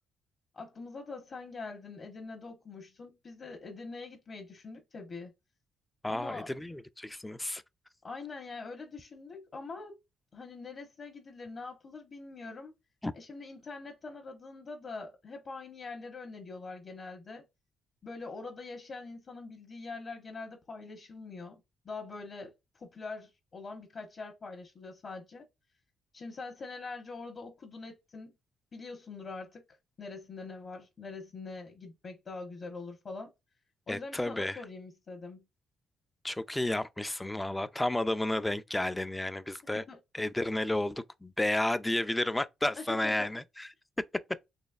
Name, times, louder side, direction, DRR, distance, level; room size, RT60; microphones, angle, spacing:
voice 1, 0.5-5.3 6.1-6.5 8.0-10.0 10.3-12.7 13.1-17.5 18.0-25.5 26.1-28.3 28.7-33.3 33.9-35.5 39.9-40.0 42.7-43.3, left 3 dB, 45° left, 1.0 m, -44 dB
voice 2, 6.0-7.6 13.0-13.1 33.9-34.6 36.2-39.8 40.1-43.7, left 1 dB, 10° left, 0.4 m, -32 dB
4.0 x 3.0 x 2.4 m
cardioid pair, 90°, 0 cm